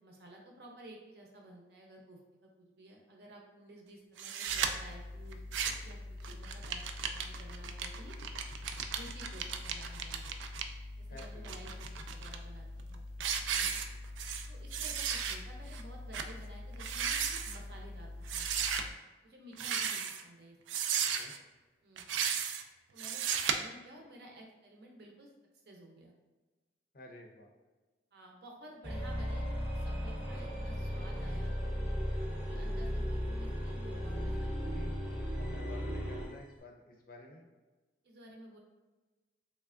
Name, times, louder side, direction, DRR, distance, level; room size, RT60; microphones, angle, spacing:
voice 1, 0.0-5.4 5.8-8.2 8.7-10.2 11.0-13.0 13.4-13.7 14.5-18.7 19.2-20.8 21.8-22.1 22.9-25.3 25.7-26.1 28.1-31.5 32.3-35.3 35.6-35.8 38.0-38.6, right 1 dB, 60° right, 0 dB, 0.6 m, -53 dB
sound 1, 4.2-4.7 5.3-5.9 6.2-10.6 11.2-12.4 12.8-12.9 13.2-14.5 14.7-15.4 15.7-15.8 16.1-16.3 16.7-17.6 18.3-18.8 19.5-20.2 20.7-21.4 22.0-22.6 23.0-23.5, right 7 dB, 90° right, 0.3 m, -35 dB
sound 2, 4.5-18.9, left 2 dB, 90° left, 0.7 m, -45 dB
voice 2, 11.1-12.0 13.6-13.8 21.0-21.3 26.9-27.5 30.2-30.6 34.7-35.0 35.4-37.4, left 1 dB, 50° left, 1 dB, 0.6 m, -52 dB
sound 3, 28.8-36.3, equal, 10° right, 0.7 m, -36 dB
3.4 x 3.2 x 2.4 m, 1.2 s
head